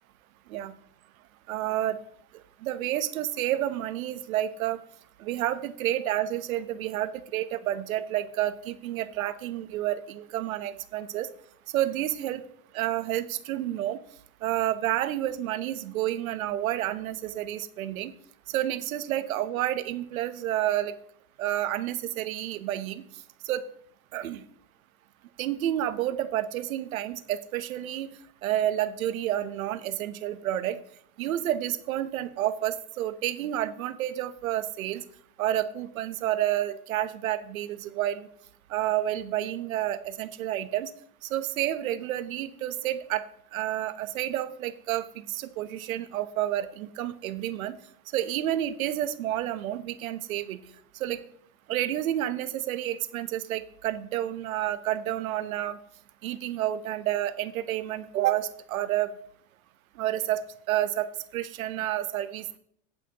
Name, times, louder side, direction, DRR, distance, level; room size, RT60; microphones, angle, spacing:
voice 1, 1.5-2.0 2.6-4.8 5.2-11.3 11.7-12.4 12.7-14.0 14.4-18.1 18.5-21.0 21.4-23.0 23.5-23.6 24.1-24.4 25.4-28.1 28.4-30.8 31.2-35.0 35.4-38.3 38.7-40.9 41.3-43.2 43.5-47.7 48.1-50.6 51.0-51.2 51.7-55.8 56.2-59.1 60.0-62.6, right 13 dB, 75° right, 12 dB, 1.0 m, -30 dB
17.5 x 5.9 x 3.0 m, 0.63 s
supercardioid pair, 145°, 42 cm